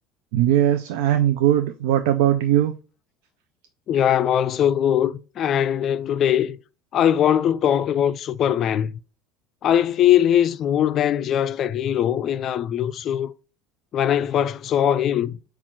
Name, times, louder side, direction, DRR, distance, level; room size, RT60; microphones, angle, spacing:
voice 1, 0.3-2.7, right 11 dB, 80° right, 0.4 m, -19 dB
voice 2, 3.9-6.6 6.9-8.9 9.6-13.3 13.9-15.4, left 10 dB, 45° left, 0.3 m, -21 dB
7.2 x 2.4 x 3.0 m
supercardioid pair, 120°, 0 cm